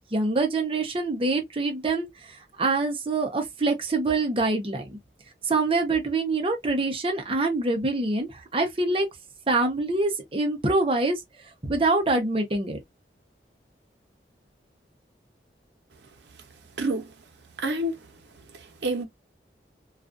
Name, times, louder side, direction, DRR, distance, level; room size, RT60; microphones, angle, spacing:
voice 1, 0.1-5.0 5.5-9.1 9.5-11.2 11.6-12.8, right 3 dB, 30° right, 0.7 m, -25 dB
voice 2, 16.8-17.1 17.6-18.1 18.5-19.0, right 1 dB, 75° right, 0.8 m, -28 dB
2.4 x 2.4 x 2.4 m
head